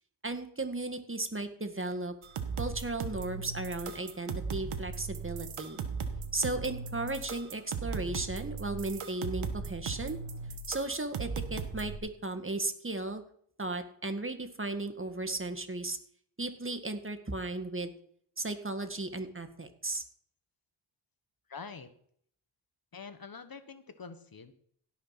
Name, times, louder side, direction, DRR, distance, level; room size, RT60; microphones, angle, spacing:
voice 1, 0.2-2.1 2.6-5.8 6.3-10.2 10.7-13.2 13.6-16.0 16.4-17.9 18.4-20.0, right 2 dB, 25° right, 7 dB, 1.9 m, -35 dB
sound 1, 2.2-12.0, right 5 dB, 75° right, 1.7 m, -38 dB
voice 2, 21.5-21.9 22.9-24.5, left 5 dB, 45° left, 10 dB, 1.4 m, -45 dB
16.5 x 6.5 x 5.9 m, 0.62 s
cardioid pair, 50°, 50 cm